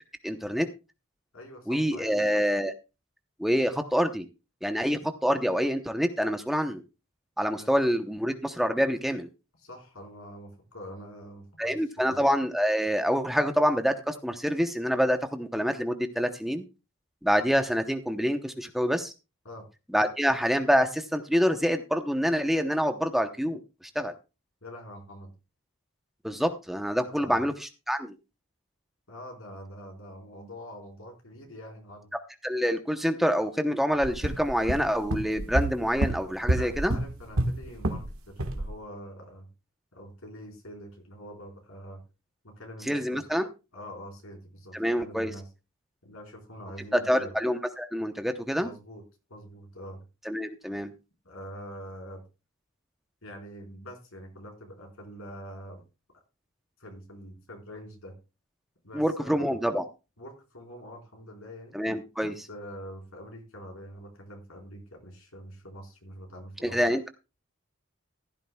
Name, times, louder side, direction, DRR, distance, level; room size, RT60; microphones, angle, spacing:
voice 1, 0.2-0.7 1.7-2.7 3.4-4.3 4.6-6.8 7.4-9.3 11.6-16.6 17.2-19.1 19.9-23.6 23.9-24.1 26.2-28.1 32.4-36.9 42.9-43.5 44.7-45.3 46.9-48.7 50.3-50.9 58.9-59.8 61.7-62.5 66.6-67.1, equal, ahead, 6 dB, 0.8 m, -26 dB
voice 2, 1.3-2.2 7.6-7.7 9.6-12.2 19.4-19.7 24.6-25.3 27.0-27.4 29.1-32.1 36.5-39.5 39.9-42.0 42.4-43.3 43.7-45.5 46.0-47.4 48.6-49.0 49.3-50.0 51.2-52.2 53.2-55.8 56.8-58.2 58.8-59.6 60.2-61.8 62.2-66.8, equal, 90° left, 1 dB, 4.5 m, -45 dB
sound 1, 34.0-38.1 38.4-38.7, right 1 dB, 85° right, 1.5 m, -29 dB
15.5 x 13.0 x 2.3 m, 0.29 s
head